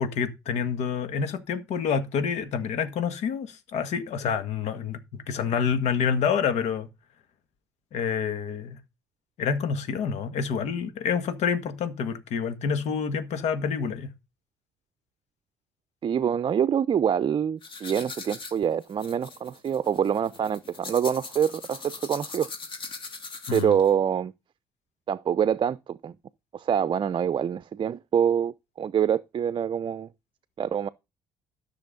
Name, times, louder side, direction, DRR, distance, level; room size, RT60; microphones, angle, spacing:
voice 1, 0.0-6.9 7.9-8.8 9.4-14.1 23.5-23.7, left 6 dB, 65° left, 1.8 m, -28 dB
voice 2, 16.0-22.5 23.5-24.3 25.1-26.1 26.5-30.1 30.6-30.9, right 8 dB, 40° right, 0.6 m, -25 dB
sound 1, 17.6-23.9, left 4 dB, 45° left, 2.9 m, -40 dB
13.5 x 6.4 x 3.9 m
hypercardioid pair, 55°, 12 cm